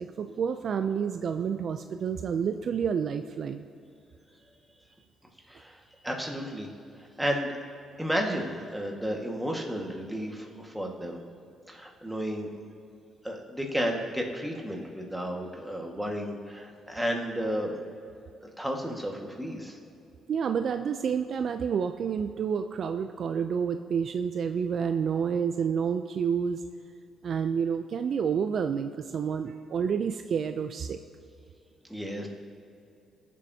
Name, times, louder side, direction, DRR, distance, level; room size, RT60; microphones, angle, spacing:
voice 1, 0.0-3.6 20.3-26.6 27.2-31.0, right 7 dB, 55° right, 8 dB, 0.4 m, -29 dB
voice 2, 5.5-6.7 7.2-7.6 8.0-11.2 11.7-12.5 13.2-17.8 18.6-19.8 31.9-32.3, equal, 5° right, 0 dB, 1.6 m, -32 dB
18.0 x 7.5 x 2.8 m, 2.6 s
cardioid pair, 90°, 0 cm